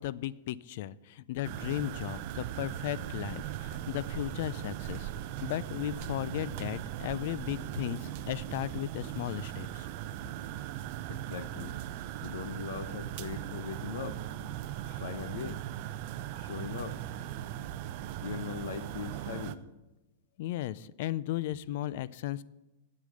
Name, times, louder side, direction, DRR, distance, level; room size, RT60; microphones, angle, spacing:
voice 1, 0.0-5.1 5.4-9.9 14.9-15.0 20.4-22.4, left 13 dB, 45° left, 20 dB, 0.4 m, -35 dB
sound 1, 1.4-19.6, right 12 dB, 40° right, 0.5 m, -39 dB
voice 2, 11.1-11.8 12.2-14.2 15.0-15.6 16.3-17.0 18.2-19.6, left 7 dB, 70° left, 11 dB, 0.8 m, -40 dB
9.3 x 8.4 x 6.4 m, 1.0 s
supercardioid pair, 170°, 0 cm